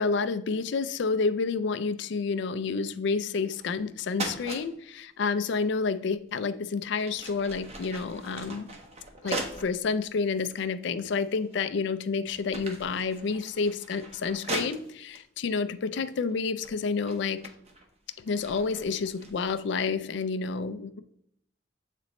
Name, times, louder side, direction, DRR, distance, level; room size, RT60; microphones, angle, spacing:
voice 1, 0.0-8.7 9.2-17.5 18.2-21.0, left 4 dB, 65° left, 13 dB, 0.4 m, -29 dB
sound 1, 3.5-3.9 4.1-4.7 6.3-6.5 6.9-9.8 10.4-10.5 11.2-11.7 12.1-15.2 16.1-16.3 16.6-19.7, right 2 dB, 35° right, 0.8 m, -39 dB
7.6 x 4.1 x 3.0 m, 0.72 s
head